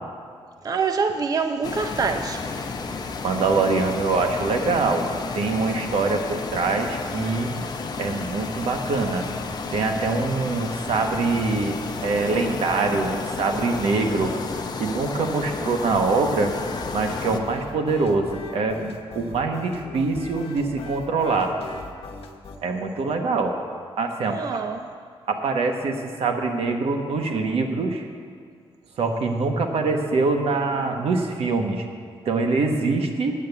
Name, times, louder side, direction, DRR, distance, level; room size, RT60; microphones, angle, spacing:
voice 1, 0.6-2.5 24.3-24.9, right 5 dB, 40° right, 6 dB, 0.5 m, -25 dB
sound 1, 1.6-17.4, left 4 dB, 45° left, 0.7 m, -32 dB
voice 2, 3.2-7.5 8.0-9.3 9.7-14.3 14.8-16.5 16.9-21.5 22.6-23.5 24.0-24.4 25.3-25.9 26.2-28.1 29.0-31.8 32.2-33.3, right 3 dB, 85° right, 4 dB, 1.1 m, -24 dB
sound 2, 16.4-22.6, left 4 dB, 75° left, 0.9 m, -40 dB
8.9 x 8.5 x 7.9 m, 2.1 s
wide cardioid pair, 140°, 10 cm